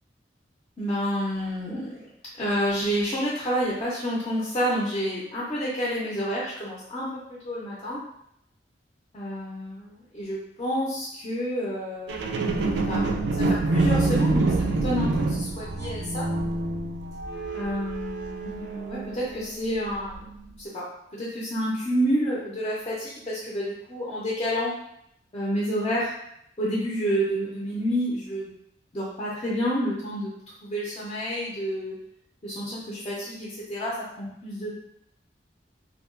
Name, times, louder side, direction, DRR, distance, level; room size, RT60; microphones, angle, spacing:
voice 1, 0.8-2.0 2.4-8.0 9.1-12.5 12.8-13.0 13.3-16.3 17.5-20.9 21.1-24.7 25.3-26.1 26.6-28.5 28.9-30.3 30.6-31.9 32.4-34.7, equal, 30° left, -6 dB, 0.5 m, -29 dB
sound 1, 12.1-19.5 20.1-20.2, right 2 dB, 75° right, 0.3 m, -26 dB
2.7 x 2.2 x 2.4 m, 0.75 s
head